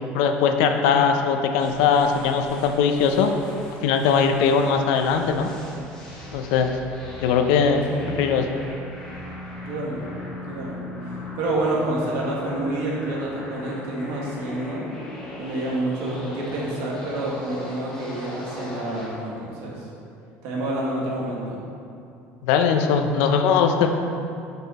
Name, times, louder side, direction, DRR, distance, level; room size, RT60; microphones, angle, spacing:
voice 1, 0.1-3.3 3.8-5.5 6.3-6.7 7.2-7.8 8.2-8.6 22.4-23.9, left 6 dB, 80° left, 6 dB, 0.5 m, -20 dB
sound 1, 1.6-19.3, left 1 dB, 15° left, 1.1 m, -39 dB
voice 2, 9.6-10.2 10.5-10.8 11.4-14.8 15.4-19.9 20.4-21.6, right 1 dB, 70° right, -4 dB, 1.5 m, -28 dB
5.9 x 5.4 x 4.2 m, 2.5 s
cardioid pair, 175°, 5 cm